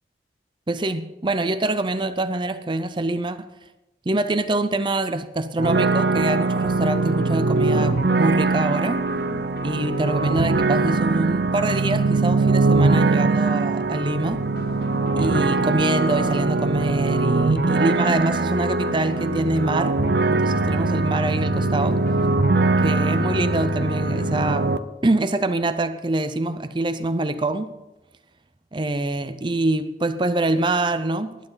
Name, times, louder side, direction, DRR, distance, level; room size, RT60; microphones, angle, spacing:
voice 1, 0.7-3.5 4.1-9.0 9.6-14.4 15.2-20.0 20.3-22.0 22.8-24.7 25.0-27.7 28.7-31.4, right 2 dB, 25° right, 0.6 m, -24 dB
sound 1, 5.6-24.8, right 3 dB, 70° right, 0.8 m, -22 dB
sound 2, 6.6-24.5, left 3 dB, 60° left, 0.8 m, -38 dB
20.0 x 11.5 x 4.0 m
head